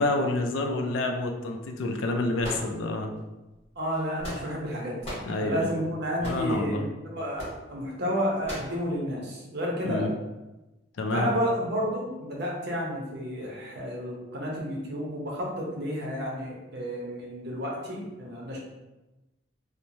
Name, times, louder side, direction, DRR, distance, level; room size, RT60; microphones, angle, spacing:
voice 1, 0.0-3.1 5.3-5.7 6.2-6.8 9.8-10.1 11.0-11.3, left 2 dB, 80° left, 4 dB, 0.4 m, -28 dB
sound 1, 2.4-3.2 3.9-4.7 5.0-5.3 6.2-6.5 7.4-7.6 8.4-8.8, equal, 35° left, 1.1 m, -37 dB
voice 2, 3.8-10.1 11.1-18.6, equal, 60° right, -2 dB, 0.7 m, -31 dB
3.1 x 2.1 x 2.6 m, 1.1 s
head